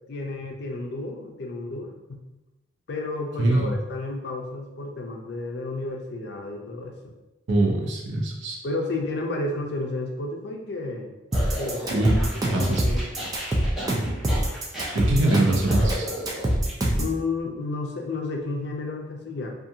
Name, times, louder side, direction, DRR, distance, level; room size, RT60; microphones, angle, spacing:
voice 1, 0.1-2.2 2.9-6.9 8.6-11.1 11.6-11.9 12.5-13.0 17.0-19.6, left 2 dB, 55° left, 2 dB, 0.4 m, -31 dB
voice 2, 3.4-3.8 7.5-8.6 11.9-12.2 12.5-12.8 14.9-16.1, right 2 dB, 65° right, 0 dB, 0.5 m, -22 dB
sound 1, 11.3-16.7, equal, ahead, 0.7 m, -35 dB
sound 2, 11.3-17.2, right 1 dB, 20° right, 0.3 m, -24 dB
2.5 x 2.4 x 2.7 m, 1.0 s
head